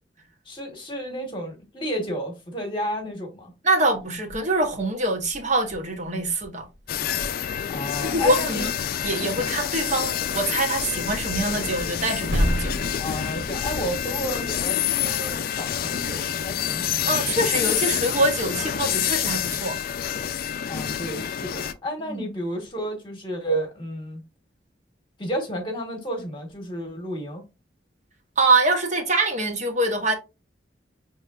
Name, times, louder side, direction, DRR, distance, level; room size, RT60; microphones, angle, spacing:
voice 1, 0.4-3.5 7.7-8.7 13.0-16.9 20.7-24.2 25.2-27.4, equal, 30° left, 1.1 m, -31 dB
voice 2, 3.6-6.6 8.0-8.7 9.0-12.8 17.0-19.8 22.1-22.2 28.4-30.1, right 2 dB, 40° right, 0.9 m, -24 dB
Growling / Hiss, 3.9-14.6, equal, 85° right, 0.9 m, -35 dB
sound 1, 6.9-21.7, left 9 dB, 55° left, 0.4 m, -27 dB
5.6 x 3.1 x 2.4 m
head